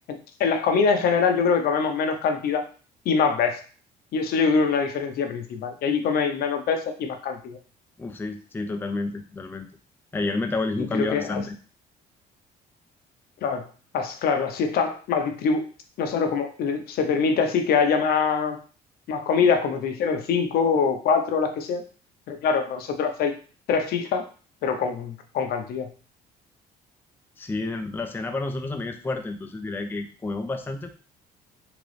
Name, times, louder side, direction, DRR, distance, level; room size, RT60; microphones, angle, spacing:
voice 1, 0.1-2.6 3.1-3.6 4.1-7.6 10.9-11.4 13.4-13.6 13.9-15.7 16.0-18.6 19.1-21.8 22.3-23.3 23.7-24.2 24.6-25.9, left 5 dB, 65° left, 6 dB, 0.7 m, -24 dB
voice 2, 8.0-9.7 10.1-11.6 27.4-30.9, left 3 dB, 10° left, 5 dB, 0.4 m, -30 dB
3.8 x 3.0 x 3.2 m, 0.38 s
cardioid pair, 110°, 17 cm